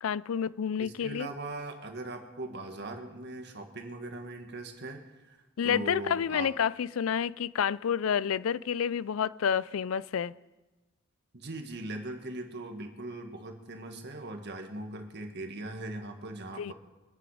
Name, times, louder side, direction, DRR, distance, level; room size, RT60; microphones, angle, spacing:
voice 1, 0.0-1.3 5.6-10.3 16.6-16.7, left 7 dB, 80° left, 20 dB, 0.4 m, -29 dB
voice 2, 0.8-5.4 5.6-6.5 11.3-16.7, right 2 dB, 55° right, 5 dB, 1.8 m, -40 dB
24.5 x 9.2 x 5.0 m, 1.1 s
head